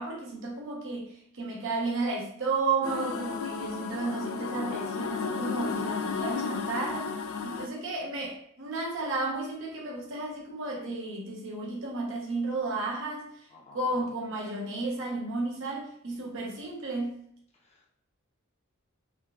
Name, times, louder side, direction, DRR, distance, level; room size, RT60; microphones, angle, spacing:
voice 1, 0.0-7.1 7.4-13.4 13.7-17.2, right 3 dB, 60° right, -2 dB, 0.8 m, -33 dB
sound 1, 2.8-7.7, left 5 dB, 70° left, 0.3 m, -33 dB
voice 2, 13.5-14.1 17.5-17.9, left 2 dB, 30° left, -2 dB, 0.7 m, -51 dB
3.7 x 2.3 x 2.3 m, 0.69 s
head